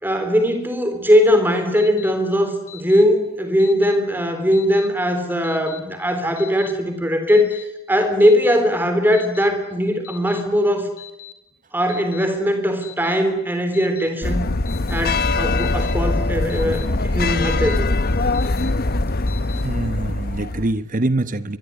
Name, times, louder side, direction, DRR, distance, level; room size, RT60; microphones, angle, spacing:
voice 1, 0.0-7.6 7.9-10.9 11.7-14.5 14.9-17.9, equal, 10° right, 7 dB, 3.9 m, -19 dB
Alarm, 1.8-2.1 2.7-3.0 3.6-4.0 4.5-4.9 5.4-5.8 6.4-6.7 7.3-7.6 8.2-8.6 9.1-9.5 10.0-10.4 11.0-11.3 11.9-12.2 12.8-13.2 13.7-14.1 14.7-15.0 15.6-15.9 16.5-16.9 17.4-17.8 18.3-18.7 19.3-19.6, left 13 dB, 90° left, 6.2 m, -40 dB
sound 1, 14.2-20.7, left 2 dB, 45° left, 0.9 m, -22 dB
voice 2, 19.6-21.6, right 2 dB, 35° right, 13 dB, 0.9 m, -24 dB
23.5 x 22.5 x 9.7 m, 0.92 s
head